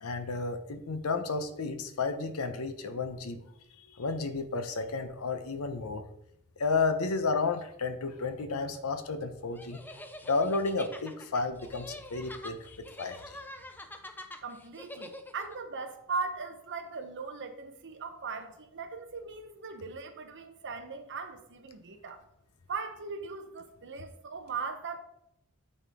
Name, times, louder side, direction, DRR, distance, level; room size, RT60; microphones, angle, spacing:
voice 1, 0.0-3.4 3.8-6.0 6.6-9.8 10.3-13.4, left 4 dB, 85° left, 0.7 m, -32 dB
sound 1, 9.6-15.6, left 1 dB, 10° left, 0.5 m, -46 dB
voice 2, 14.4-22.2 22.7-25.0, right 4 dB, 55° right, 0.8 m, -39 dB
8.8 x 4.4 x 3.5 m
head